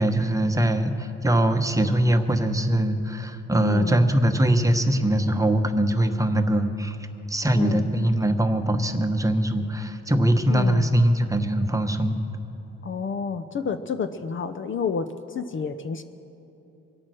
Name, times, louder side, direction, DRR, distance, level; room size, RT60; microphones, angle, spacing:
voice 1, 0.0-7.0 7.3-12.2, right 1 dB, 10° right, 6 dB, 1.0 m, -22 dB
voice 2, 3.6-4.0 7.5-7.9 10.5-10.9 12.8-16.0, left 5 dB, 40° left, 10 dB, 0.6 m, -29 dB
24.0 x 8.8 x 6.3 m, 2.9 s
cardioid pair, 90°, 30 cm